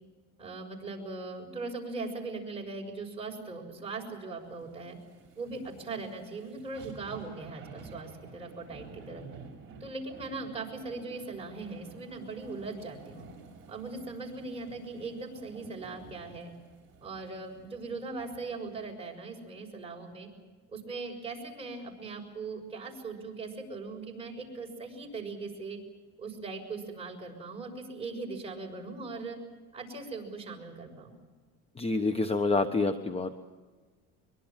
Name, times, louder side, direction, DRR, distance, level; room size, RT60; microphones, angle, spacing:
voice 1, 0.4-5.0 5.4-9.2 9.8-13.3 13.7-16.5 17.0-20.3 20.7-25.8 26.2-29.4 29.7-31.1, right 3 dB, 20° right, 0 dB, 6.4 m, -40 dB
sound 1, 4.4-18.9 19.3-19.4, right 4 dB, 40° right, 7.2 m, -51 dB
voice 2, 31.7-33.3, left 3 dB, 20° left, 9 dB, 1.1 m, -27 dB
23.5 x 23.0 x 7.5 m, 1.3 s
cardioid pair, 130°, 32 cm